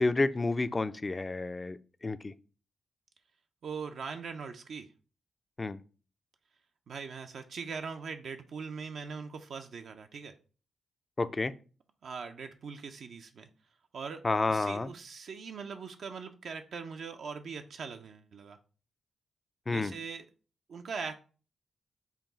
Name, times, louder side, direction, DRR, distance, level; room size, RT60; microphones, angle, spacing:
voice 1, 0.0-2.3 5.6-5.8 11.2-11.5 14.2-14.9 19.7-19.9, left 3 dB, 30° left, 13 dB, 0.4 m, -30 dB
voice 2, 3.6-4.9 6.9-10.3 12.0-13.5 13.9-14.2 14.5-18.6 19.7-20.3 20.7-21.1, right 5 dB, 70° right, 5 dB, 0.4 m, -41 dB
5.7 x 2.3 x 3.9 m, 0.37 s
cardioid pair, 55°, 0 cm